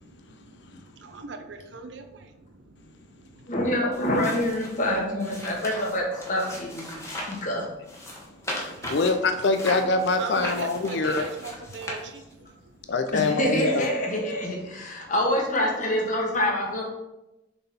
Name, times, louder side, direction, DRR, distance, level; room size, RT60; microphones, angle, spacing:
voice 1, 0.0-3.6 5.4-5.6 6.8-7.5 8.0-8.9 10.2-12.9 14.7-15.1, right 4 dB, 70° right, 7 dB, 0.7 m, -41 dB
voice 2, 3.5-6.0 6.3-7.6 13.1-16.8, left 1 dB, 45° left, -2 dB, 1.6 m, -26 dB
sound 1, 3.9-7.5 7.8-12.5 13.2-13.3, left 1 dB, 15° left, 1.2 m, -37 dB
voice 3, 8.5-11.2 12.9-13.9, left 3 dB, 65° left, 7 dB, 0.5 m, -24 dB
6.9 x 3.9 x 4.2 m, 0.96 s
head